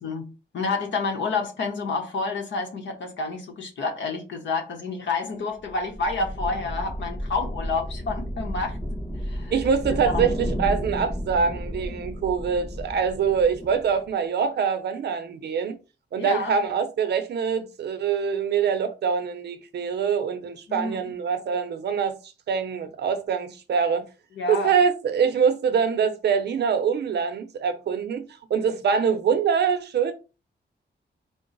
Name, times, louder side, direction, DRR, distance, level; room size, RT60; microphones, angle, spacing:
voice 1, 0.0-8.8 9.1-9.6 10.0-10.3 16.2-16.5 20.7-21.0 24.3-24.7, left 3 dB, 80° left, 0.9 m, -29 dB
sound 1, 5.6-14.1, equal, 20° left, 1.0 m, -32 dB
voice 2, 9.5-15.8 16.1-22.2 22.5-24.1 24.5-28.2 28.5-30.1, right 6 dB, 65° right, 0.6 m, -24 dB
3.8 x 2.0 x 3.8 m
wide cardioid pair, 160°, 19 cm